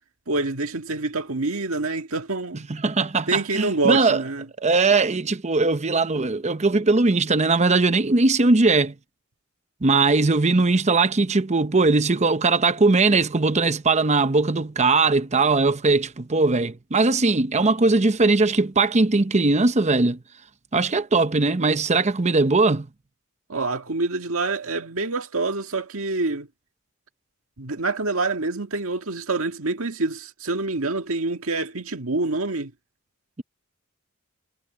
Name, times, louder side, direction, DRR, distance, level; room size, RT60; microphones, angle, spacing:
voice 1, 0.3-2.7 3.3-4.5 23.5-26.5 27.6-32.7, right 3 dB, 80° right, 1.8 m, -26 dB
voice 2, 2.7-4.2 4.6-8.9 9.8-20.2 20.7-22.9, right 3 dB, 35° right, 0.8 m, -20 dB
head